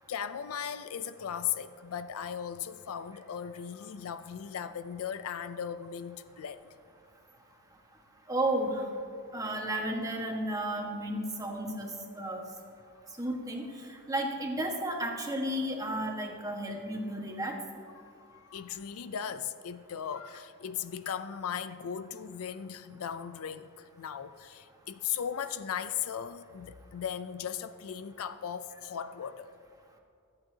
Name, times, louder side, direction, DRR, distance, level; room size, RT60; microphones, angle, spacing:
voice 1, 0.1-6.6 18.0-29.5, left 8 dB, 65° left, 12 dB, 0.4 m, -37 dB
voice 2, 8.3-8.8 9.3-12.4 13.2-13.7 14.1-17.5, right 1 dB, 15° right, 1 dB, 1.4 m, -33 dB
26.0 x 8.8 x 2.8 m, 2.5 s
head